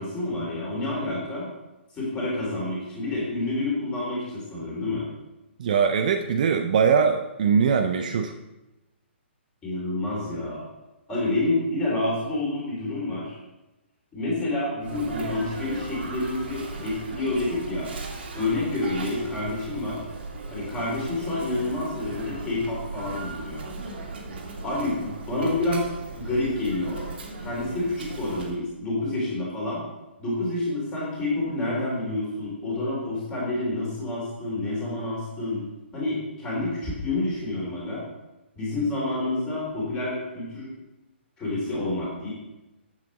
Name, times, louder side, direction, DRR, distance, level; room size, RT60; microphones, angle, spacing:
voice 1, 0.0-1.5 1.9-5.1 9.6-10.7 11.1-13.4 14.1-17.9 18.3-20.0 20.5-23.6 24.6-25.9 26.1-27.0 27.4-29.8 30.2-35.6 35.9-38.0 38.5-40.7 41.4-42.3, left 2 dB, 10° left, -5 dB, 2.8 m, -28 dB
voice 2, 5.6-8.3, right 6 dB, 40° right, 6 dB, 0.5 m, -21 dB
Sneeze, 14.8-28.6, right 3 dB, 60° right, 1.8 m, -37 dB
7.7 x 7.4 x 4.9 m, 1.0 s
hypercardioid pair, 170°, 7 cm